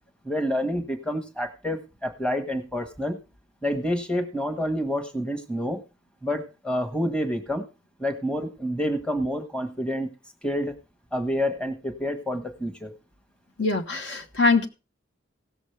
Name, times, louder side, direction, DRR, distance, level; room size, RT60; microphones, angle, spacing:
voice 1, 0.2-3.2 3.6-5.8 6.2-7.7 8.0-10.1 10.4-10.7 11.1-12.9, equal, 5° left, 5 dB, 1.3 m, -28 dB
voice 2, 13.6-14.7, left 3 dB, 60° left, 6 dB, 1.2 m, -23 dB
17.5 x 7.2 x 3.4 m, 0.29 s
head